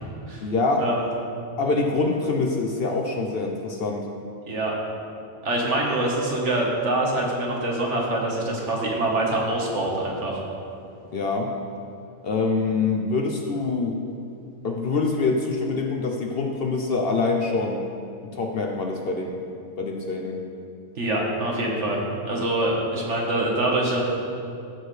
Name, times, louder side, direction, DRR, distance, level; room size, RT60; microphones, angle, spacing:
voice 1, 0.4-0.8 1.6-4.1 11.1-11.5 12.2-14.0 14.6-17.8 18.2-19.4 19.8-20.4 23.0-23.1, left 3 dB, 55° left, 2 dB, 0.8 m, -25 dB
voice 2, 5.4-10.4 20.9-24.0, right 1 dB, 60° right, -2 dB, 1.7 m, -25 dB
14.5 x 6.4 x 3.3 m, 2.6 s
omnidirectional pair, 1.4 m